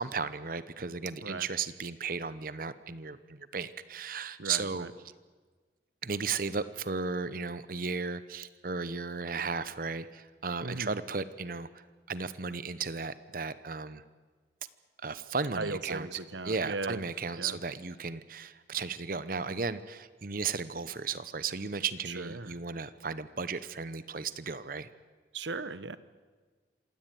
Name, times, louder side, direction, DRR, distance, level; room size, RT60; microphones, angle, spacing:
voice 1, 0.0-4.9 6.0-11.7 12.1-14.0 15.0-16.1 16.4-24.9, right 5 dB, 50° right, 15 dB, 0.8 m, -35 dB
voice 2, 4.4-4.9 10.6-11.0 15.6-17.0 17.4-17.6 22.1-22.6 25.3-26.0, right 3 dB, 85° right, 15 dB, 1.1 m, -37 dB
26.5 x 17.0 x 9.2 m, 1.4 s
head